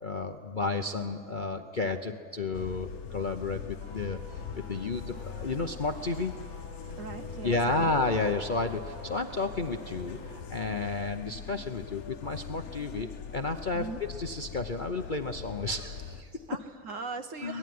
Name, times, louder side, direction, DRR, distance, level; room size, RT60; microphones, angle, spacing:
voice 1, 0.0-4.2 4.6-6.3 7.4-13.1 13.3-16.3 17.4-17.6, left 3 dB, 40° left, 6 dB, 0.7 m, -32 dB
sound 1, 2.5-16.2, left 7 dB, 60° left, 1.4 m, -42 dB
sound 2, 3.8-10.5 10.8-10.9, right 1 dB, 75° right, 6.8 m, -48 dB
voice 2, 7.0-8.0 13.7-14.0 16.5-17.6, right 4 dB, 50° right, 9 dB, 1.3 m, -40 dB
24.5 x 20.0 x 9.5 m, 2.2 s
omnidirectional pair, 1.9 m